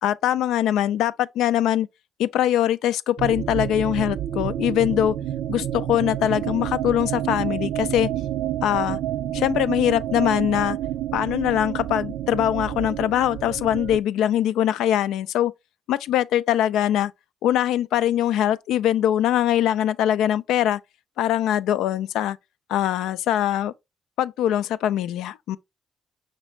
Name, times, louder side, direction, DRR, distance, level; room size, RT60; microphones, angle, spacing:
voice 1, 0.0-1.9 2.2-5.2 5.5-8.1 8.6-9.0 9.3-10.8 11.1-15.5 15.9-17.1 17.4-20.8 21.2-22.4 22.7-23.7 24.2-25.6, left 11 dB, 85° left, 0.4 m, -22 dB
sound 1, 3.2-14.0, right 12 dB, 80° right, 0.3 m, -29 dB
5.9 x 2.7 x 3.1 m
cardioid pair, 90°, 0 cm